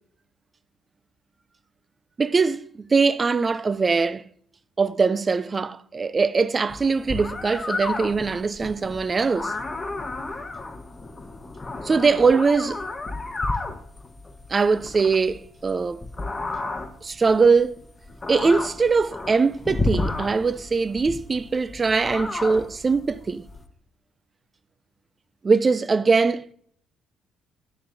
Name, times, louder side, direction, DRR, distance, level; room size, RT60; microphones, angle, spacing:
voice 1, 2.2-4.3 4.8-9.6 11.8-12.8 14.5-16.0 17.0-17.8 18.3-23.5 25.4-26.5, right 4 dB, 35° right, 0.4 m, -21 dB
sound 1, 6.7-23.7, left 2 dB, 25° left, 1.1 m, -32 dB
10.0 x 9.7 x 2.6 m
hypercardioid pair, 50°, 0 cm